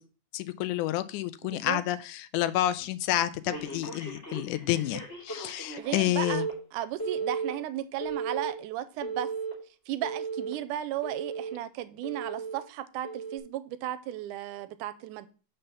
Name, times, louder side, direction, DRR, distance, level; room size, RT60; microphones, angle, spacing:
voice 1, 0.3-6.5, left 14 dB, 85° left, 2.0 m, -29 dB
voice 2, 1.4-1.8 5.7-6.4 6.7-9.3 9.9-15.3, right 13 dB, 85° right, 2.1 m, -35 dB
Telephone, 3.5-6.0 6.2-6.5 7.0-7.5 8.0-8.5 9.0-9.5 10.0-10.5 11.0-11.5 12.0-12.5 13.0-13.4, right 5 dB, 20° left, 3.1 m, -35 dB
5.6 x 5.5 x 6.8 m
omnidirectional pair, 3.6 m